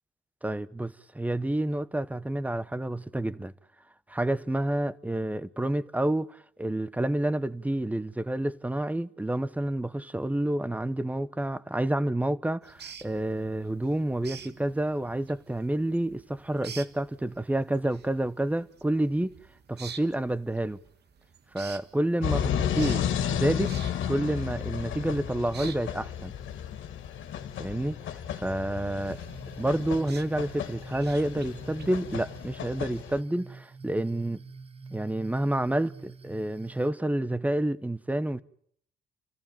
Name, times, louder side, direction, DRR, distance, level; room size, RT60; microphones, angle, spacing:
voice 1, 0.4-3.5 4.1-19.4 19.7-20.8 21.5-23.0 23.3-23.7 24.1-26.3 27.6-29.2 29.6-34.4 34.9-38.4, right 1 dB, 5° right, 1.0 m, -29 dB
sound 1, 12.6-32.1, right 6 dB, 55° right, 2.0 m, -50 dB
sound 2, 22.2-33.2, left 9 dB, 75° left, 2.2 m, -33 dB
sound 3, 29.0-36.9, right 4 dB, 30° right, 1.3 m, -47 dB
30.0 x 14.5 x 9.0 m
cardioid pair, 90°, 20 cm